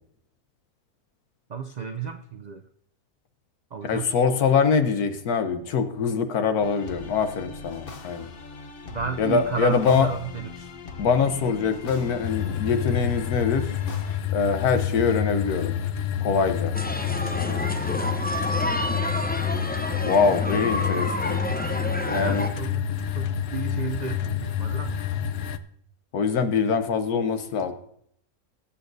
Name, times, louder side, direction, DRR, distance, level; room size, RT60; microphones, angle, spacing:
voice 1, 1.5-2.6 3.7-4.1 8.9-10.7 22.1-22.9 23.2-25.0, right 6 dB, 80° right, 7 dB, 0.3 m, -32 dB
voice 2, 3.8-8.3 9.2-10.1 11.0-13.7 14.3-15.8 16.2-16.7 17.4-17.7 20.0-21.4 22.1-22.5 26.1-27.7, left 5 dB, 85° left, 8 dB, 1.5 m, -23 dB
sound 1, 6.6-14.2, left 4 dB, 45° left, 1.0 m, -40 dB
sound 2, 12.2-25.6, left 9 dB, 65° left, 0.6 m, -28 dB
sound 3, 16.7-22.5, left 1 dB, 10° left, 0.4 m, -29 dB
20.0 x 8.6 x 2.6 m, 0.68 s
omnidirectional pair, 1.6 m